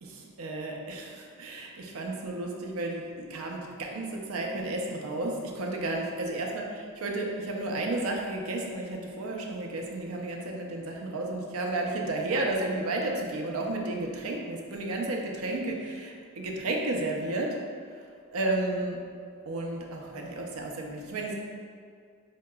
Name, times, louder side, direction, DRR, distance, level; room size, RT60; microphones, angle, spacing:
voice 1, 0.0-6.6 7.0-17.6 17.9-18.0 18.3-19.0 19.5-21.3, right 2 dB, 80° right, 0 dB, 0.5 m, -32 dB
4.5 x 2.8 x 2.2 m, 2.2 s
head